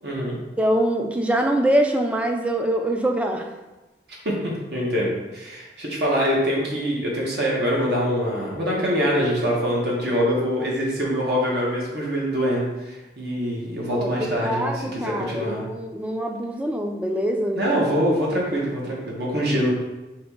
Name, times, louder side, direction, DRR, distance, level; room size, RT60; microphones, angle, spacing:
voice 1, 0.0-0.4 4.2-15.6 17.6-19.7, equal, 70° right, -4 dB, 1.1 m, -24 dB
voice 2, 0.6-3.5 13.9-17.6, right 1 dB, 5° right, 3 dB, 0.3 m, -24 dB
4.9 x 3.0 x 3.6 m, 1.1 s
head